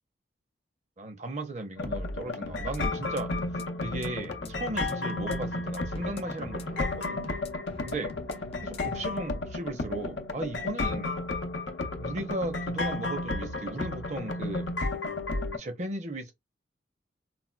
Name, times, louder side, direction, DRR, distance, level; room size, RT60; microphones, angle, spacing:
voice 1, 1.0-3.3 3.8-7.2 7.8-8.1 8.6-11.1 12.0-14.7 15.5-16.3, right 2 dB, 40° right, 0.7 m, -36 dB
sound 1, 1.8-15.6, left 2 dB, 90° left, 0.6 m, -33 dB
sound 2, 2.6-9.2, left 3 dB, 35° left, 0.4 m, -46 dB
4.1 x 2.2 x 2.2 m
head